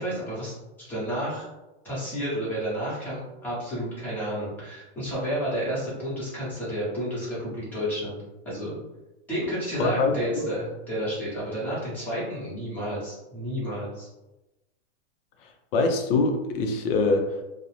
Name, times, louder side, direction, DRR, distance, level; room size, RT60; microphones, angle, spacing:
voice 1, 0.0-1.5 1.8-8.2 8.4-8.8 9.3-14.1, equal, 5° left, -9 dB, 0.7 m, -31 dB
voice 2, 9.8-10.5 15.7-17.4, left 3 dB, 55° left, 5 dB, 0.5 m, -24 dB
2.5 x 2.0 x 3.0 m, 1.0 s
supercardioid pair, 170°, 35 cm